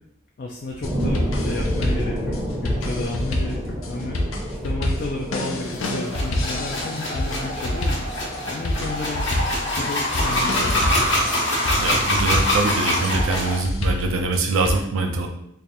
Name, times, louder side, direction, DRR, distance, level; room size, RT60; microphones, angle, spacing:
voice 1, 0.4-4.2 4.6-9.3 9.7-11.0, left 3 dB, 45° left, -1 dB, 0.4 m, -32 dB
sound 1, 0.7-14.7, left 1 dB, 80° left, 0.6 m, -28 dB
sound 2, 0.8-11.8 12.3-12.4, equal, 10° right, 0.6 m, -31 dB
sound 3, 5.7-13.6, left 1 dB, 65° left, 1.0 m, -24 dB
voice 2, 11.8-15.3, right 3 dB, 85° right, 3 dB, 0.5 m, -24 dB
3.3 x 2.4 x 4.2 m, 0.77 s
head